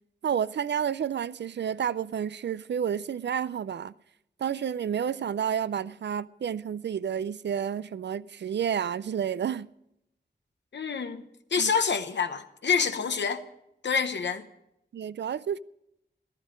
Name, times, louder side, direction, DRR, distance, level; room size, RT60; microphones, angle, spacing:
voice 1, 0.2-3.9 4.4-9.7 11.6-11.7 14.9-15.6, right 8 dB, 80° right, 0.4 m, -30 dB
voice 2, 10.7-11.2 11.5-13.4 13.8-14.5, left 6 dB, 80° left, 0.9 m, -27 dB
14.5 x 13.5 x 5.1 m
wide cardioid pair, 90°, 18 cm